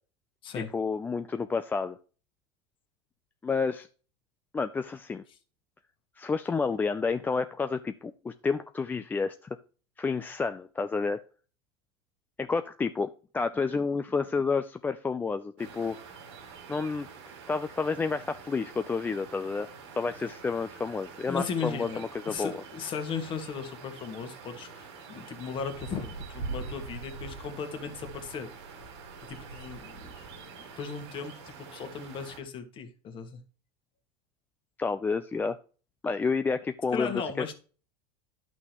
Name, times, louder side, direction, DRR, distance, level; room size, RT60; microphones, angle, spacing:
voice 1, 0.7-2.0 3.4-3.9 4.5-5.2 6.2-9.4 10.0-11.2 12.4-16.0 16.7-19.7 20.0-22.6 34.8-35.6 36.0-37.1, left 4 dB, 15° left, 0.4 m, -30 dB
sound 1, 15.6-32.4, right 4 dB, 85° right, 2.8 m, -45 dB
voice 2, 21.3-28.5 29.3-30.0 30.6-33.4 36.9-37.5, left 6 dB, 35° left, 1.7 m, -36 dB
11.0 x 6.1 x 3.0 m
supercardioid pair, 125°, 14 cm